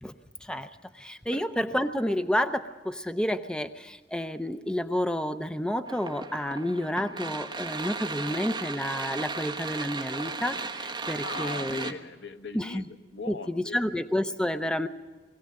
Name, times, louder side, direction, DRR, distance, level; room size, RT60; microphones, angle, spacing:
voice 1, 0.9-11.9 12.5-12.9 13.3-14.9, equal, 5° left, 9 dB, 0.5 m, -30 dB
sound 1, 5.9-11.9, right 4 dB, 25° right, 1.2 m, -36 dB
voice 2, 11.2-13.8, left 3 dB, 70° left, 7 dB, 1.0 m, -39 dB
21.5 x 16.5 x 7.5 m, 1.3 s
head